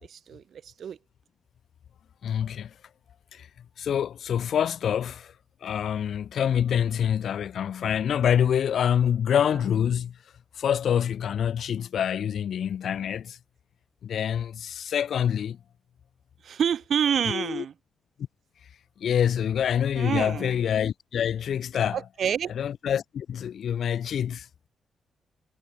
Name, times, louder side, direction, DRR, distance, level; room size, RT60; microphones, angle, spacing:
voice 1, 0.1-1.0 16.4-17.7 19.9-20.5 21.9-22.5, right 8 dB, 55° right, 4.3 m, -28 dB
voice 2, 2.2-2.7 3.3-3.5 3.8-5.3 5.6-10.1 10.6-13.4 14.0-15.6 17.3-17.6 19.0-22.0 22.5-24.5, left 9 dB, 60° left, 1.5 m, -26 dB
wide cardioid pair, 175°, 0 cm